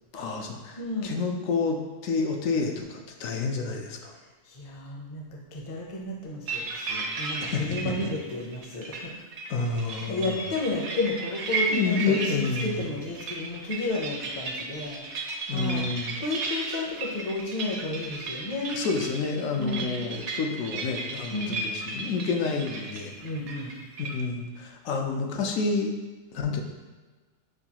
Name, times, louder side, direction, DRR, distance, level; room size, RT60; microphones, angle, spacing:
voice 1, 0.1-4.1 7.4-8.1 8.9-9.1 9.5-10.5 11.7-13.0 15.5-16.2 18.7-23.2 24.0-25.9 26.3-26.6, left 4 dB, 85° left, 3 dB, 1.0 m, -29 dB
voice 2, 0.8-1.1 4.5-9.1 9.8-15.8 16.2-18.8 19.6-19.9 21.3-21.6 23.2-23.8, left 2 dB, 40° left, -1 dB, 0.5 m, -32 dB
sound 1, 6.5-24.1, right 3 dB, 65° right, 0.8 m, -35 dB
6.3 x 2.3 x 2.8 m, 1.3 s
omnidirectional pair, 1.4 m